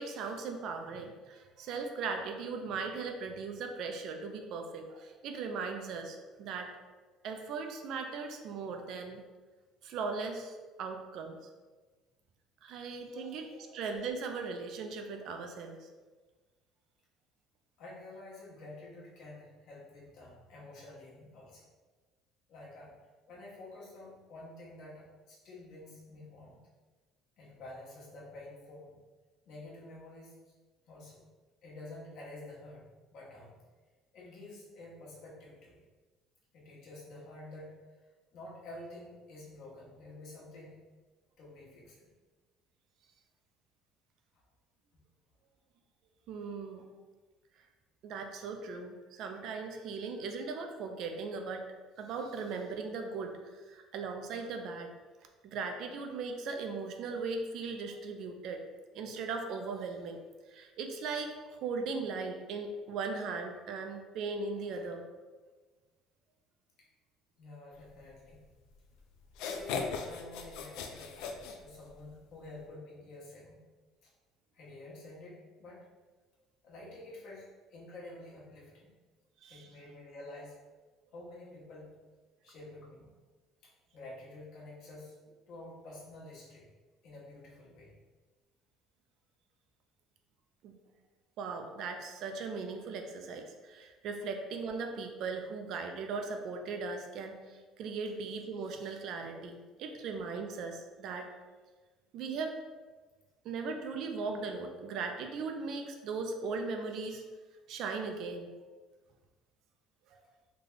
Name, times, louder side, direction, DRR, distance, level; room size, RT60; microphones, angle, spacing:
voice 1, 0.0-6.7 7.2-9.2 9.8-11.4 12.6-15.8 46.3-46.8 48.0-51.7 52.0-53.4 53.7-54.9 55.4-58.6 58.9-60.2 60.5-65.0 79.4-79.7 90.6-90.8 91.4-101.3 102.1-102.6 103.4-107.2 107.7-108.5 110.1-110.2, right 4 dB, 55° right, 4 dB, 0.4 m, -38 dB
voice 2, 13.1-13.8 17.8-21.7 22.5-22.9 23.3-26.6 27.4-29.0 29.4-30.5 30.9-31.2 31.6-33.6 34.1-35.8 36.5-37.8 38.3-40.8 41.4-42.1 44.3-44.4 46.9-47.0 67.4-68.4 69.4-73.6 74.0-74.1 74.5-75.9 76.6-78.9 79.5-80.6 81.1-82.0 82.4-83.1 83.6-85.2 85.5-86.7 87.0-87.9, left 2 dB, 55° left, -5 dB, 1.1 m, -49 dB
sound 1, 68.7-68.8 69.3-72.2, left 5 dB, 80° left, 0.4 m, -38 dB
3.3 x 2.2 x 3.8 m, 1.3 s
cardioid pair, 155°, 0 cm